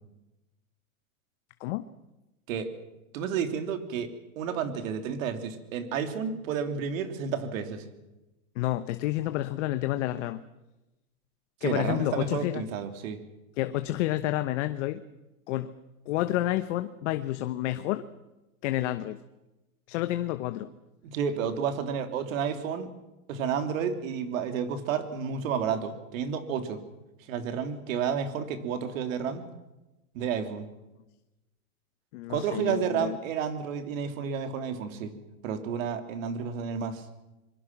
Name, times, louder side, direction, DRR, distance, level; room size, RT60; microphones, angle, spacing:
voice 1, 3.1-7.8 11.6-13.2 21.0-22.9 23.3-26.8 27.2-29.5 30.1-30.7 32.3-35.1 35.4-37.1, right 7 dB, 65° right, 8 dB, 3.2 m, -31 dB
voice 2, 8.6-10.4 11.6-12.6 13.6-15.0 15.5-15.7 16.1-18.0 18.6-19.2 19.9-20.7 32.1-33.2, left 15 dB, 55° left, 10 dB, 1.2 m, -29 dB
26.0 x 22.5 x 6.1 m, 1.0 s
hypercardioid pair, 135°, 44 cm